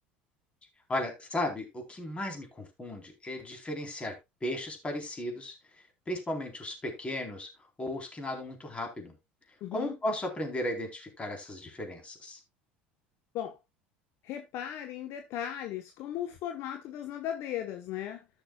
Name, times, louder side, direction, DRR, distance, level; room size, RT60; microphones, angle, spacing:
voice 1, 0.9-4.1 4.4-5.5 6.1-7.5 7.8-9.1 9.7-12.4, left 1 dB, 20° left, 3.6 m, -35 dB
voice 2, 9.6-10.0 13.3-13.6 14.2-18.3, left 11 dB, 55° left, 1.1 m, -37 dB
14.5 x 6.4 x 2.3 m
hypercardioid pair, 75°, 5 cm